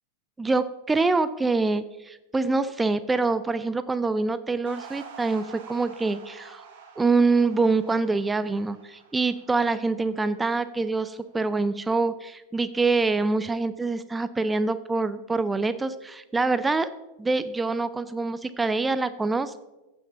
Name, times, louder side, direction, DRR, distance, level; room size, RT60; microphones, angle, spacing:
voice 1, 0.4-6.6 7.0-16.9 17.2-19.6, right 3 dB, 10° right, 12 dB, 0.5 m, -25 dB
sound 1, 4.7-11.1, right 6 dB, 55° right, 2.6 m, -48 dB
15.5 x 7.1 x 5.6 m, 1.0 s
figure-of-eight pair, 90°, 0 cm